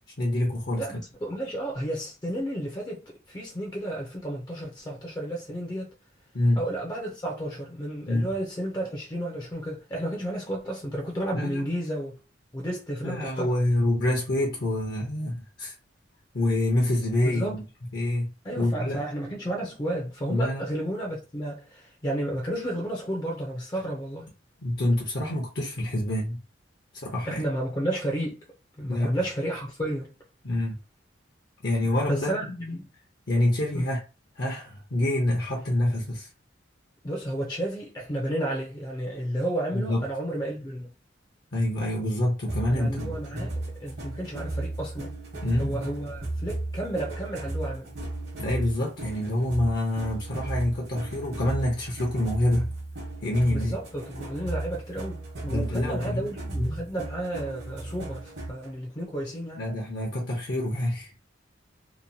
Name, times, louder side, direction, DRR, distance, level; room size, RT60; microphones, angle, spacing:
voice 1, 0.2-0.8 6.3-6.6 8.1-8.3 11.3-11.6 13.0-15.7 16.3-17.6 17.9-18.3 18.6-19.0 20.3-20.6 24.6-26.4 27.0-27.4 28.9-29.1 30.4-30.8 31.6-32.4 33.3-34.0 34.4-36.3 39.7-40.0 41.5-43.5 45.4-45.8 48.4-52.7 53.2-53.7 55.5-56.3 56.6-56.8 59.6-61.1, left 1 dB, 60° left, 0.7 m, -26 dB
voice 2, 0.8-5.9 6.6-12.2 12.5-13.5 17.2-17.6 18.4-24.3 27.2-28.4 28.8-30.1 32.1-32.9 33.7-33.9 37.0-40.9 42.7-45.1 45.6-47.9 53.5-59.6, right 1 dB, 20° left, 0.5 m, -32 dB
sound 1, 42.5-58.7, right 2 dB, 60° right, 1.0 m, -35 dB
2.9 x 2.2 x 2.6 m
head